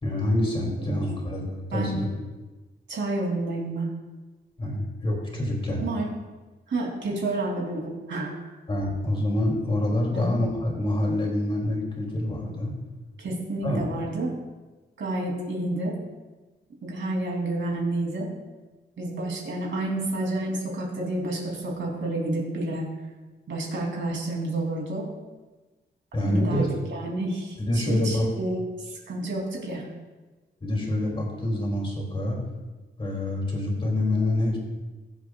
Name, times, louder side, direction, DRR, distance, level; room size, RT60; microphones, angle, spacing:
voice 1, 0.0-2.1 4.6-5.8 8.7-12.7 13.6-14.0 26.1-26.7 27.6-28.3 30.6-32.4 33.0-34.6, left 1 dB, 30° left, -2 dB, 2.9 m, -26 dB
voice 2, 2.9-3.9 5.8-6.1 6.7-8.4 10.1-10.3 13.2-14.3 15.0-16.0 16.8-18.3 19.0-22.8 23.5-25.1 26.2-29.8, right 2 dB, 75° right, -2 dB, 3.2 m, -29 dB
22.0 x 7.7 x 2.4 m, 1.2 s
wide cardioid pair, 165°, 20 cm